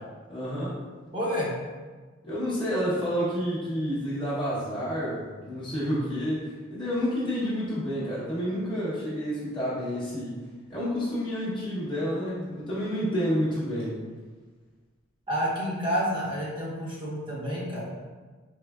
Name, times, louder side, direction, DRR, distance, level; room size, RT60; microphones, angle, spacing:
voice 1, 0.3-0.7 2.2-10.4 10.7-14.0, equal, 25° left, -9 dB, 0.9 m, -29 dB
voice 2, 1.1-1.5 15.3-17.9, equal, 25° right, -6 dB, 1.0 m, -29 dB
4.3 x 3.2 x 2.3 m, 1.4 s
head